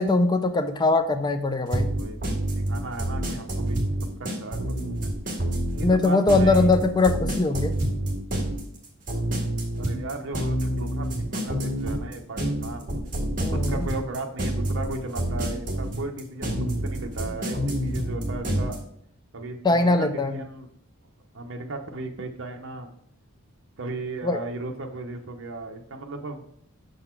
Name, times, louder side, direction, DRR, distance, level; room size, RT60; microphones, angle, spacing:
voice 1, 0.0-1.9 5.8-7.8 13.4-13.8 19.6-20.4 24.2-24.4, left 3 dB, 20° left, 8 dB, 0.4 m, -21 dB
sound 1, 1.7-18.8, right 1 dB, 35° right, 1.9 m, -27 dB
voice 2, 2.0-2.3 2.5-4.7 5.7-6.7 9.8-12.9 13.7-16.5 16.8-18.8 19.3-20.7 21.3-22.9 23.8-26.4, right 2 dB, 60° right, 3 dB, 0.8 m, -35 dB
6.5 x 4.0 x 4.4 m, 0.69 s
head